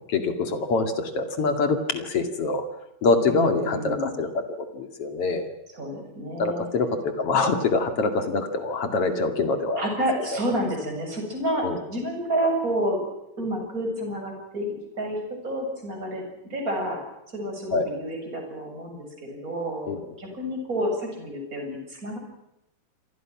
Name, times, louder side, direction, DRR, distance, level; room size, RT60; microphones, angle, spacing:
voice 1, 0.1-2.6 3.0-4.3 4.6-5.5 6.4-9.8 11.6-11.8 17.7-17.9 19.9-20.0, left 3 dB, 45° left, 6 dB, 2.1 m, -25 dB
voice 2, 3.2-4.2 5.7-6.6 9.7-13.0 13.4-17.0 17.3-19.9 20.2-22.2, right 1 dB, 15° right, 2 dB, 7.5 m, -29 dB
28.0 x 25.0 x 6.2 m, 0.85 s
omnidirectional pair, 5.7 m